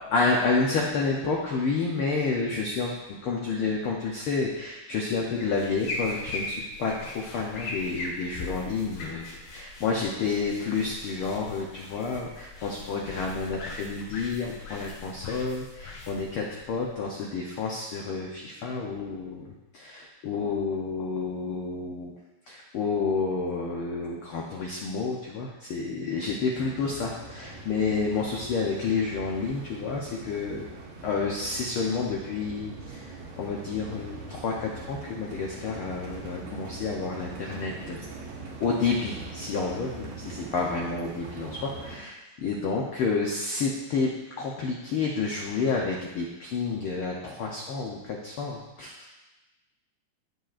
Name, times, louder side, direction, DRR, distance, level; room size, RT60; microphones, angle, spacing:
voice 1, 0.1-22.1 22.5-30.6 31.0-38.1 38.6-44.1 44.4-49.1, left 4 dB, 80° left, -1 dB, 1.2 m, -30 dB
sound 1, 5.3-17.3, left 2 dB, 60° left, 2.6 m, -40 dB
sound 2, 26.5-42.0, right 3 dB, 75° right, 2.5 m, -42 dB
16.0 x 5.4 x 2.5 m, 1.1 s
omnidirectional pair, 3.5 m